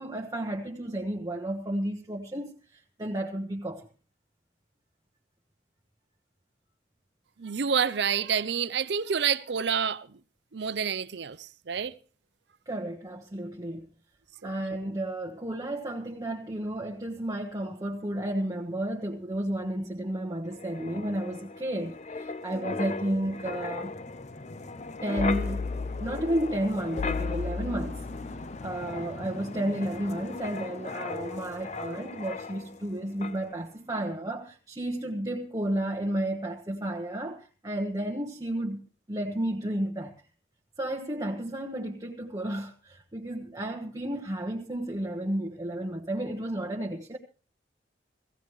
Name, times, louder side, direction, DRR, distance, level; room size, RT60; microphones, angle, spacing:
voice 1, 0.0-3.9 12.7-13.9 14.4-23.9 25.0-25.6 26.0-28.3 28.6-38.8 39.1-40.1 40.8-47.2, right 1 dB, 20° right, 1.1 m, -32 dB
voice 2, 7.4-10.1 10.5-11.9 14.4-14.5, right 7 dB, 65° right, 0.6 m, -28 dB
Wind, 20.5-32.9 33.2-33.4, left 4 dB, 40° left, 0.6 m, -36 dB
17.5 x 16.0 x 3.2 m
head